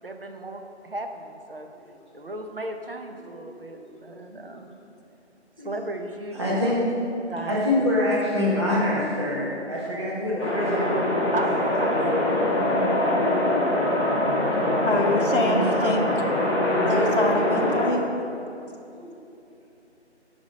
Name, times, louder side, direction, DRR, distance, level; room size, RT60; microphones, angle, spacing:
voice 1, 0.0-1.7 2.1-4.7 5.6-6.6 7.3-7.9 11.3-12.1 12.8-13.2 13.5-14.0 15.7-16.3 16.6-16.7, right 2 dB, 55° right, 4 dB, 0.8 m, -35 dB
voice 2, 3.8-4.2 4.5-4.6 5.6-5.7 6.3-6.8 7.4-11.3 11.8-12.0 18.9-19.1, left 1 dB, 25° right, -8 dB, 1.2 m, -26 dB
sound 1, 10.4-17.9, left 1 dB, 25° left, 1.5 m, -23 dB
voice 3, 14.9-16.0 16.9-18.0, left 2 dB, 50° left, -2 dB, 1.0 m, -25 dB
9.5 x 4.9 x 5.2 m, 2.8 s
figure-of-eight pair, 170°, 34 cm